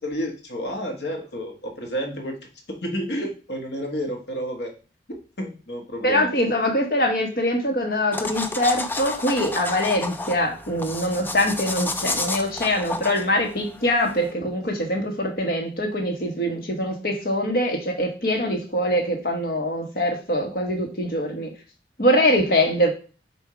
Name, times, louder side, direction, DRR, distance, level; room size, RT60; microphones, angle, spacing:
voice 1, 0.0-2.3 2.8-4.7 5.4-6.3, equal, 75° left, 2 dB, 1.5 m, -30 dB
voice 2, 6.0-21.5 22.0-22.9, left 1 dB, 55° left, 2 dB, 1.4 m, -23 dB
sound 1, 8.1-14.3, left 2 dB, 10° left, 0.4 m, -31 dB
7.1 x 2.7 x 4.8 m, 0.35 s
head